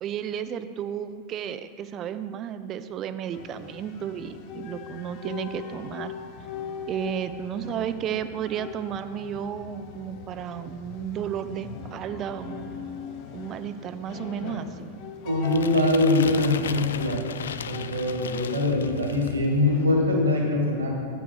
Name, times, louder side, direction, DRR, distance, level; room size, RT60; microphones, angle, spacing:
voice 1, 0.0-6.1 6.9-12.7 13.3-15.0, right 9 dB, 30° right, 11 dB, 0.4 m, -33 dB
sound 1, 3.3-19.9, left 6 dB, 45° left, 0.7 m, -41 dB
voice 2, 15.2-17.2 17.6-21.0, left 2 dB, 70° right, 0 dB, 1.8 m, -23 dB
sound 2, 15.4-19.5, left 7 dB, 65° left, 0.3 m, -36 dB
8.2 x 5.9 x 6.2 m, 2.1 s
figure-of-eight pair, 90°, 0 cm